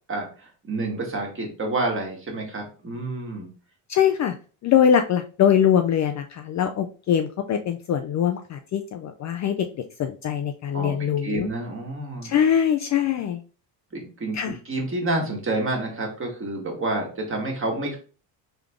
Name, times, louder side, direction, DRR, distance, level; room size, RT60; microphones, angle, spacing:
voice 1, 0.1-3.5 10.7-12.3 13.9-18.0, right 2 dB, 25° right, 0 dB, 1.7 m, -29 dB
voice 2, 3.9-4.3 4.6-9.7 10.0-11.5 12.2-13.4 14.3-14.5, left 8 dB, 40° left, 6 dB, 0.4 m, -22 dB
3.8 x 3.4 x 3.5 m, 0.37 s
cardioid pair, 110°, 45 cm